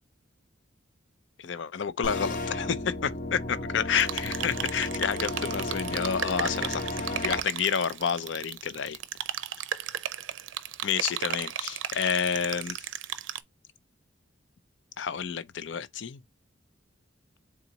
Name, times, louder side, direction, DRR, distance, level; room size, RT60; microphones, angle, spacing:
voice 1, 1.4-9.0 10.8-12.9 15.0-16.2, left 7 dB, 70° left, 0.5 m, -30 dB
sound 1, 2.0-7.4, left 2 dB, 40° left, 0.8 m, -34 dB
sound 2, 4.0-13.4, right 10 dB, 75° right, 0.5 m, -35 dB
4.0 x 3.6 x 2.8 m
head